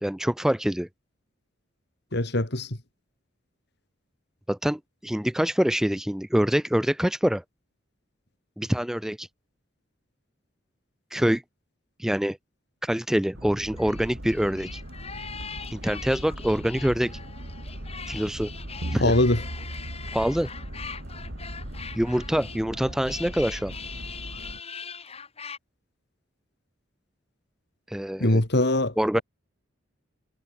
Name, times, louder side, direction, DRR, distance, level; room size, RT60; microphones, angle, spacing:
voice 1, 0.0-0.9 4.5-7.4 8.6-9.3 11.1-11.4 12.0-12.4 12.8-14.8 15.7-17.2 18.1-18.5 18.9-19.1 20.1-20.5 21.9-23.7 27.9-28.4 29.0-29.2, equal, ahead, 0.3 m, -25 dB
voice 2, 2.1-2.8 19.0-19.4 28.2-29.2, left 1 dB, 55° left, 2.6 m, -23 dB
sound 1, 13.3-24.6, equal, 55° right, 5.4 m, -40 dB
sound 2, 13.8-25.6, left 6 dB, 30° left, 3.7 m, -41 dB
sound 3, 18.8-21.6, right 1 dB, 80° right, 2.3 m, -37 dB
head